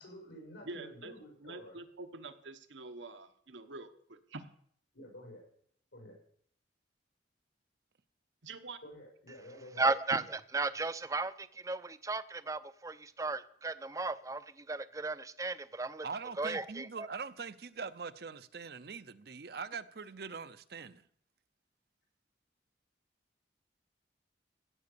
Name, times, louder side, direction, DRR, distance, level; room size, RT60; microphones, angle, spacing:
voice 1, 0.0-1.7 4.9-5.4 5.9-6.2 8.8-9.8, left 1 dB, 90° left, 6.3 m, -50 dB
voice 2, 0.6-1.1 1.4-4.4 8.4-8.8, right 3 dB, 85° right, 1.2 m, -46 dB
voice 3, 9.8-10.2 10.5-14.4 14.7-16.1 16.4-16.9, right 3 dB, 15° right, 0.5 m, -34 dB
voice 4, 16.0-21.0, right 5 dB, 55° right, 0.6 m, -42 dB
16.0 x 7.2 x 6.8 m
head